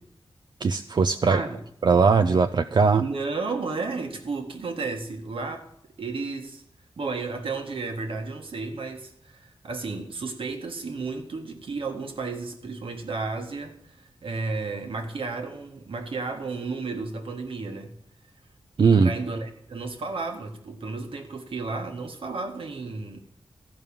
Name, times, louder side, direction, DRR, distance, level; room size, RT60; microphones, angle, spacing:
voice 1, 0.6-1.4 1.8-3.0 18.8-19.1, right 5 dB, 55° right, 8 dB, 0.5 m, -19 dB
voice 2, 1.2-1.6 3.0-5.7 6.0-6.6 7.0-17.9 18.8-23.2, right 3 dB, 80° right, 4 dB, 1.7 m, -33 dB
14.0 x 5.5 x 8.8 m, 0.71 s
wide cardioid pair, 110°, 9 cm